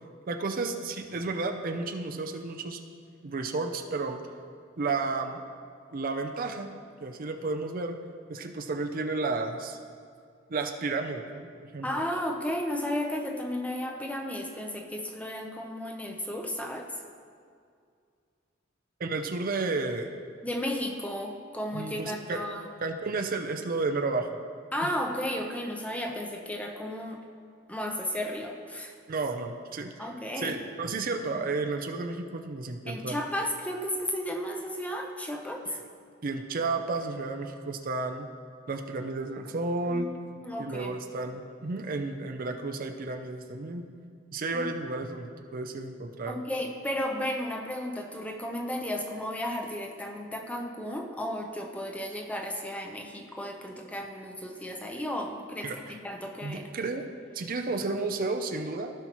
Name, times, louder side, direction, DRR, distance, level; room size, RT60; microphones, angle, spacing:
voice 1, 0.3-2.8 3.2-4.2 4.8-5.4 5.9-6.7 7.0-8.0 8.3-9.8 10.5-12.0 19.0-20.2 21.7-22.4 22.8-24.3 24.8-24.9 29.1-30.1 30.4-33.2 35.7-35.8 36.2-38.3 38.7-40.1 40.6-43.8 44.3-46.4 55.6-55.8 56.4-57.1 57.3-58.9, right 3 dB, 45° right, 5 dB, 0.5 m, -32 dB
voice 2, 11.8-16.9 20.4-22.7 24.7-27.2 27.7-29.0 30.0-30.6 32.9-35.8 39.8-41.0 44.5-44.6 46.3-56.7, left 1 dB, 5° left, 2 dB, 0.7 m, -34 dB
16.0 x 5.7 x 3.0 m, 2.2 s
head